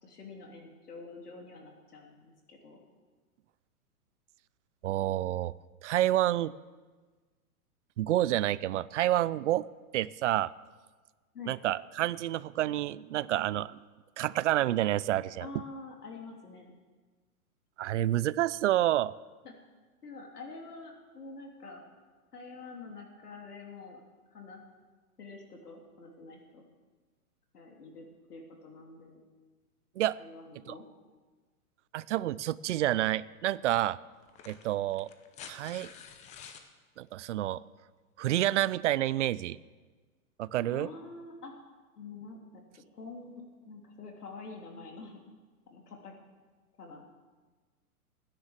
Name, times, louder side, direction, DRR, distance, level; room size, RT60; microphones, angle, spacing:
voice 1, 0.0-2.9 11.3-11.6 15.4-16.7 19.4-19.5 20.0-21.8 22.3-24.0 24.3-24.6 25.2-26.6 27.5-29.2 30.2-30.8 40.7-41.5 42.0-45.2 45.7-46.1 46.8-47.0, left 3 dB, 85° left, 1 dB, 3.4 m, -47 dB
voice 2, 4.8-5.5 5.8-6.5 8.0-9.7 9.9-10.5 11.5-13.8 14.2-15.5 17.8-19.1 30.0-30.2 30.7-30.8 31.9-34.0 34.5-35.1 35.5-35.9 37.0-37.6 38.2-39.6 40.4-40.9, right 14 dB, 55° right, 20 dB, 0.5 m, -29 dB
sound 1, 33.1-33.2 34.2-36.7 38.2-38.3, left 7 dB, 15° left, 0.7 m, -49 dB
15.0 x 10.0 x 7.4 m, 1.4 s
hypercardioid pair, 140°, 45 cm